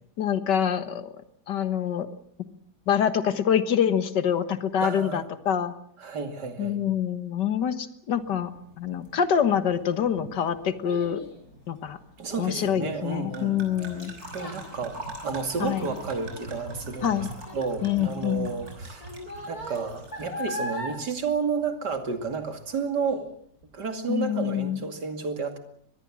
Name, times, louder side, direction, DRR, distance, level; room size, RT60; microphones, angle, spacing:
voice 1, 0.2-1.1 1.5-2.1 2.9-5.7 6.6-8.5 8.8-11.2 11.7-12.0 12.4-14.1 15.6-15.9 17.0-17.3 17.8-18.5 24.1-24.8, left 9 dB, 85° left, 11 dB, 2.0 m, -25 dB
voice 2, 4.8-5.3 6.0-6.8 12.2-13.6 14.3-17.3 17.5-19.2 19.5-23.3 23.7-25.6, right 5 dB, 75° right, 6 dB, 3.1 m, -31 dB
sound 1, 8.2-20.5, right 2 dB, 60° right, 6.2 m, -44 dB
Child speech kid speaking, 9.7-22.3 22.7-23.1 23.6-23.7, equal, 60° left, 6.1 m, -41 dB
24.5 x 20.0 x 7.4 m, 0.64 s
omnidirectional pair, 1.8 m